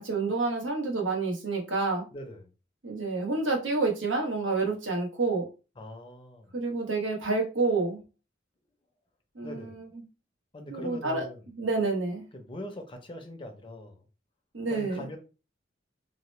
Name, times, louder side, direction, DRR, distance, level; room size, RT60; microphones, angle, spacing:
voice 1, 0.0-2.0 2.8-5.4 6.5-8.0 9.3-10.0 10.7-11.3 11.6-12.2 14.5-15.0, right 3 dB, 85° right, 0.9 m, -28 dB
voice 2, 2.1-2.5 5.8-6.6 9.4-9.8 10.5-11.4 12.3-14.1 14.7-15.2, left 1 dB, 25° left, 0.5 m, -41 dB
2.8 x 2.0 x 3.1 m
head